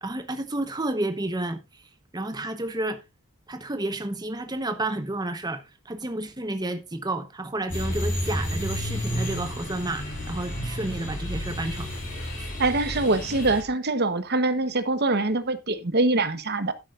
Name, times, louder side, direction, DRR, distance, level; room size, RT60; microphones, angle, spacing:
voice 1, 0.0-1.8 2.1-3.0 3.5-12.0 12.4-12.5, right 2 dB, 20° right, 1.0 m, -31 dB
sound 1, 7.7-13.6, equal, 40° left, 7.8 m, -31 dB
voice 2, 12.6-16.7, right 2 dB, 45° right, 1.1 m, -24 dB
12.0 x 11.0 x 2.5 m
head